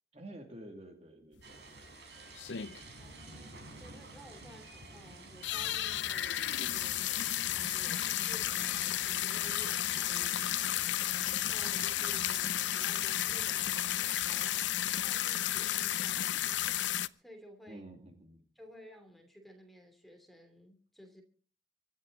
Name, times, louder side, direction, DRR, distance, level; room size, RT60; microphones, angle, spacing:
voice 1, 0.1-1.9 4.6-4.7 12.0-12.1 17.7-18.5, right 1 dB, 35° right, 4 dB, 2.4 m, -50 dB
sound 1, 1.4-1.5 1.8-1.9 2.3-3.0 3.4-3.5 3.6-3.7 4.1-4.2 4.7-5.0 5.3-17.1, left 12 dB, 80° left, 0.6 m, -33 dB
sound 2, 1.4-14.3, right 3 dB, 70° right, 4.8 m, -51 dB
voice 2, 3.0-16.9 17.1-17.8 18.5-21.2, equal, ahead, 4 dB, 3.0 m, -55 dB
24.0 x 12.0 x 3.9 m, 0.41 s
head